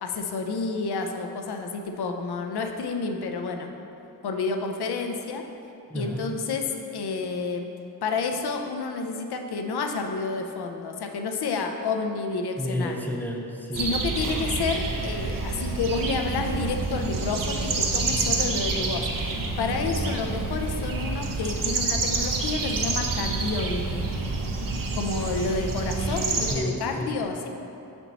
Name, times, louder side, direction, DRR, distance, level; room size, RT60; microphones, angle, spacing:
voice 1, 0.0-3.7 4.2-5.4 5.9-7.7 8.0-13.0 13.8-24.0 24.9-27.5, left 4 dB, 85° left, 4 dB, 0.6 m, -30 dB
voice 2, 5.9-6.4 12.6-13.9 26.5-27.1, equal, 5° left, 0 dB, 0.7 m, -31 dB
sound 1, 13.7-26.6, right 3 dB, 60° right, 0.7 m, -28 dB
7.3 x 4.4 x 4.0 m, 2.8 s
wide cardioid pair, 95°, 38 cm